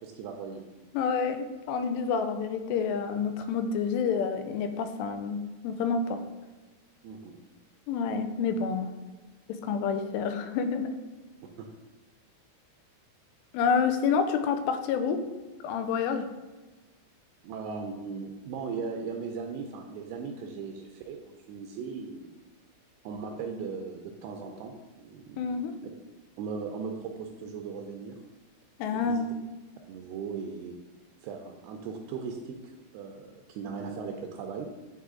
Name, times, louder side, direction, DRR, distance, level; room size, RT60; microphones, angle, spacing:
voice 1, 0.0-0.6 7.0-7.4 11.6-11.7 17.4-22.3 23.0-25.6 25.8-25.9 26.4-28.2 28.9-29.3 29.9-30.8 31.2-34.7, right 5 dB, 85° right, 3 dB, 2.6 m, -38 dB
voice 2, 0.9-6.2 7.9-8.9 9.5-10.9 13.5-15.2 15.6-16.3 25.4-25.7 28.8-29.3, left 6 dB, 85° left, 8 dB, 2.7 m, -28 dB
9.4 x 3.4 x 3.7 m, 1.2 s
omnidirectional pair, 4.8 m